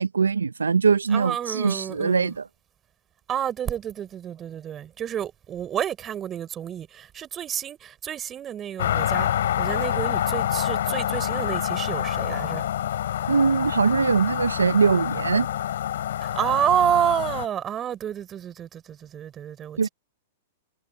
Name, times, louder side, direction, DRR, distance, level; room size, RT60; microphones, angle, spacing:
voice 1, 0.0-2.5 13.3-15.5 19.8-19.9, right 5 dB, 90° right, 0.7 m, -22 dB
voice 2, 1.1-2.3 3.3-9.3 9.6-12.6 16.3-19.9, right 10 dB, 25° right, 4.6 m, -29 dB
sound 1, 8.8-17.5, left 11 dB, 70° left, 4.9 m, -27 dB
hypercardioid pair, 110°, 0 cm